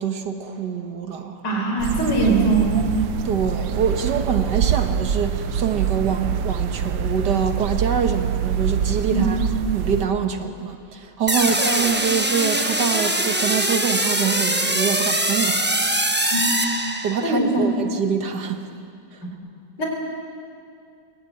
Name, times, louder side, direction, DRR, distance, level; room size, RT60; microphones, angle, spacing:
voice 1, 0.0-1.4 3.2-9.4 9.7-15.7 17.0-18.7, right 7 dB, 65° right, 1.8 m, -25 dB
voice 2, 1.4-2.8 9.1-9.3 16.3-16.4 17.2-17.5 19.8-19.9, right 3 dB, 65° left, 5.0 m, -21 dB
sound 1, 1.8-10.0, right 8 dB, 80° right, 1.5 m, -25 dB
sound 2, 11.3-17.4, right 1 dB, 10° right, 0.8 m, -22 dB
22.0 x 17.0 x 9.4 m
omnidirectional pair, 2.0 m